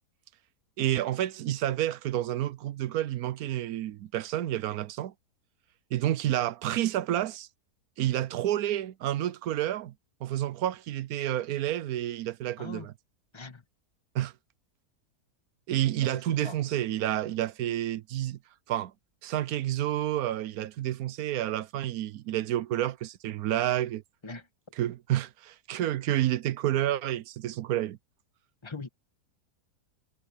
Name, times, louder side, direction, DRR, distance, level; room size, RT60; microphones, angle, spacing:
voice 1, 0.8-5.1 5.9-7.5 8.0-9.9 10.2-12.9 14.1-14.3 15.7-18.4 18.7-18.9 19.2-24.0 24.8-28.0, right 13 dB, 70° right, 1.0 m, -29 dB
voice 2, 12.6-12.9 13.3-13.6 16.0-16.6 24.2-24.5 28.6-28.9, left 3 dB, 15° left, 1.6 m, -41 dB
omnidirectional pair, 1.8 m